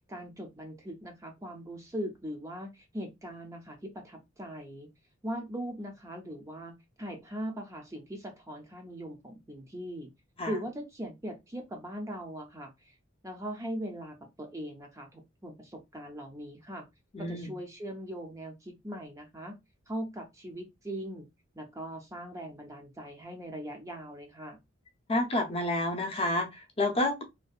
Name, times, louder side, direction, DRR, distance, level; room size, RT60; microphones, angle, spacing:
voice 1, 0.1-4.9 5.2-10.1 10.5-12.9 13.2-16.9 17.2-19.6 19.9-21.3 21.6-24.6, equal, 15° right, 0.4 m, -40 dB
voice 2, 17.1-17.5 25.1-27.2, left 1 dB, 30° left, 0.6 m, -29 dB
2.6 x 2.1 x 2.3 m
head